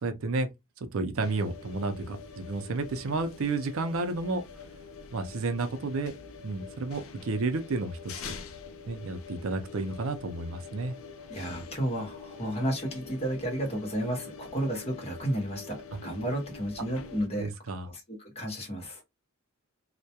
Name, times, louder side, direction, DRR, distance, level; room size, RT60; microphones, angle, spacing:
voice 1, 0.0-0.5 0.9-4.4 5.1-6.1 6.4-8.0 8.3-8.4 8.9-11.0 17.4-17.9, right 3 dB, 70° right, 0.5 m, -31 dB
sound 1, 1.2-17.3, left 5 dB, 75° left, 0.4 m, -45 dB
voice 2, 11.3-17.5 17.9-19.0, right 1 dB, 30° left, 0.8 m, -32 dB
2.2 x 2.1 x 2.7 m
head